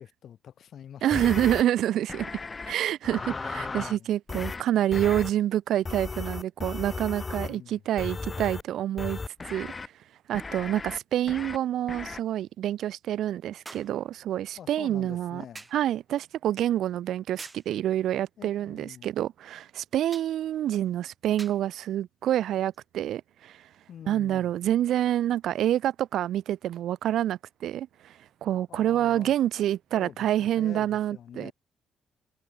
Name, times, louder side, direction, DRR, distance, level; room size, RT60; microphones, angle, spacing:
voice 1, 0.0-1.5 3.6-4.1 7.3-7.8 14.6-15.7 18.4-19.1 23.9-24.5 28.7-29.3 29.9-31.5, left 9 dB, 65° left, 1.2 m, -46 dB
voice 2, 1.0-2.3 2.7-9.2 9.5-9.7 10.3-15.4 15.7-23.6 24.1-31.5, right 12 dB, 75° right, 0.4 m, -27 dB
sound 1, 1.1-1.6 2.1-2.7 3.0-4.0 4.3-4.6 4.9-5.3 5.9-7.6 8.0-8.6 9.0-9.9 10.3-11.0 11.3-11.6 11.9-12.2, left 4 dB, 30° left, 0.5 m, -35 dB
sound 2, 13.7-14.0 15.6-15.9 17.4-17.7 20.1-20.4 21.4-21.7 22.7-22.9, right 3 dB, 20° right, 1.9 m, -45 dB
cardioid pair, 90°, 0 cm